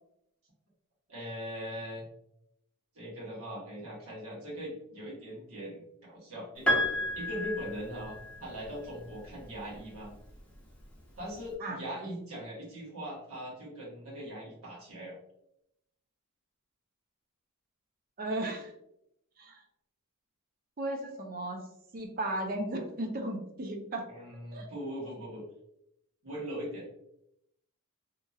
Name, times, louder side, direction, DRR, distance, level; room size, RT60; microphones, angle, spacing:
voice 1, 1.1-2.1 2.9-6.8 7.1-10.1 11.2-15.1 24.1-25.4 26.2-27.0, equal, 70° right, -5 dB, 1.3 m, -40 dB
Piano, 6.7-8.7 9.9-10.0, left 1 dB, 5° left, 0.6 m, -31 dB
voice 2, 11.6-12.1 18.2-18.7 19.4-19.6 20.8-21.6 21.9-24.1 24.5-24.7, right 1 dB, 40° right, 3 dB, 0.5 m, -35 dB
2.9 x 2.3 x 2.6 m, 0.80 s
head